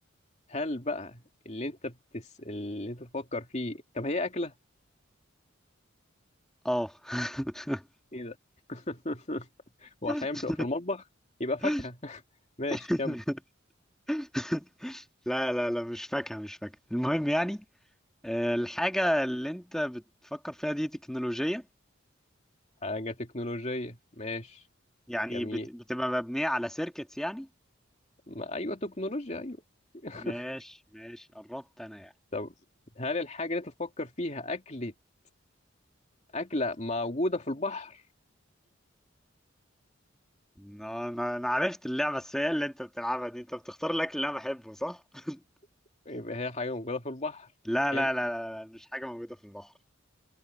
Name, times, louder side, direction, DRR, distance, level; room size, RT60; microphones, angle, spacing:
voice 1, 0.5-4.5 8.1-8.4 8.7-9.5 9.8-11.0 11.4-12.2 12.6-13.1 22.8-24.6 25.3-25.7 28.3-29.6 30.0-30.4 32.3-32.5 33.0-34.9 36.3-38.0 46.1-47.5 47.9-48.1, left 2 dB, 35° left, 2.6 m, -34 dB
voice 2, 6.6-7.8 10.1-10.6 11.6-11.8 12.7-13.4 14.1-17.6 18.2-20.0 20.3-21.6 25.1-27.5 30.2-30.6 30.9-32.1 40.6-45.4 47.7-49.7, equal, 5° left, 1.7 m, -32 dB
head